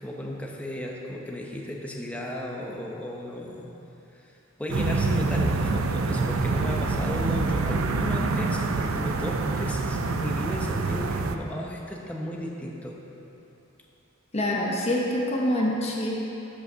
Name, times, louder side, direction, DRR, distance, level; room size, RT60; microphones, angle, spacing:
voice 1, 0.0-3.7 4.6-13.0, left 1 dB, 5° left, -2 dB, 0.8 m, -34 dB
sound 1, 4.7-11.4, right 3 dB, 80° right, 0.5 m, -26 dB
voice 2, 14.3-16.1, left 1 dB, 30° left, -2 dB, 1.0 m, -25 dB
13.0 x 5.3 x 5.6 m, 2.9 s
head